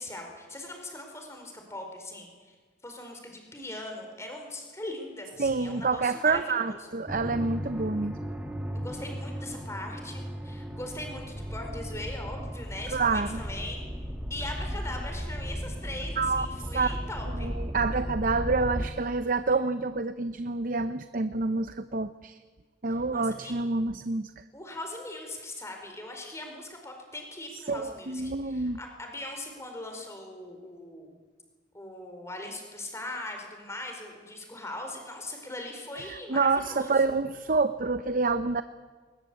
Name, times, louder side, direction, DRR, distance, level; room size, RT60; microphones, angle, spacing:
voice 1, 0.0-2.5 2.8-6.8 8.7-13.8 14.3-17.5 23.1-23.5 24.5-31.2 31.7-37.1, left 1 dB, 15° left, 3 dB, 4.5 m, -40 dB
voice 2, 5.4-8.2 12.9-13.4 16.2-16.5 16.7-16.9 17.4-22.4 22.8-24.3 27.7-28.8 36.0-38.6, right 3 dB, 50° right, 11 dB, 0.7 m, -27 dB
sound 1, 7.1-18.9, equal, 10° right, 1.9 m, -35 dB
21.5 x 21.0 x 8.4 m, 1.4 s
head